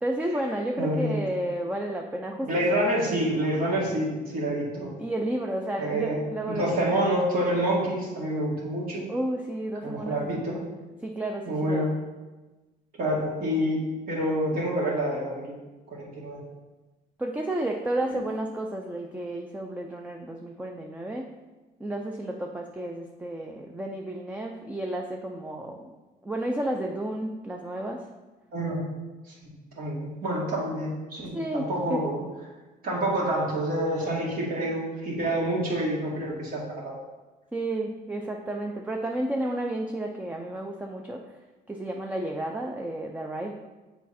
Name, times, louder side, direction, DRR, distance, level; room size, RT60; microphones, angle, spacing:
voice 1, 0.0-2.8 5.0-6.7 9.1-11.9 17.2-21.3 21.8-25.8 26.2-28.1 31.3-32.0 37.5-41.4 41.7-43.5, right 1 dB, 10° right, 2 dB, 0.5 m, -32 dB
voice 2, 0.8-1.1 2.4-4.9 5.8-6.2 6.5-9.1 9.8-10.6 11.5-11.9 13.0-13.8 14.1-15.5 15.9-16.4 28.5-28.8 29.3-32.2 32.8-36.9, right 1 dB, 60° right, -5 dB, 2.2 m, -27 dB
7.0 x 4.1 x 4.3 m, 1.2 s
cardioid pair, 110°, 17 cm